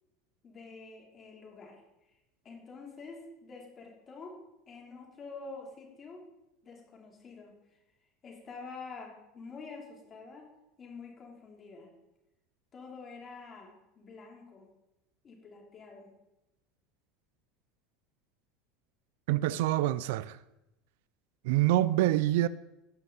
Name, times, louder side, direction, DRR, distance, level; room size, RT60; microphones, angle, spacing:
voice 1, 0.4-1.8 2.4-6.3 6.6-7.6 8.2-10.5 10.8-11.9 12.7-14.7 15.2-16.1, left 4 dB, 30° left, 3.0 m, -47 dB
voice 2, 19.3-20.4 21.4-22.5, right 15 dB, 75° right, 0.4 m, -26 dB
15.5 x 5.4 x 4.0 m
supercardioid pair, 130°, 0 cm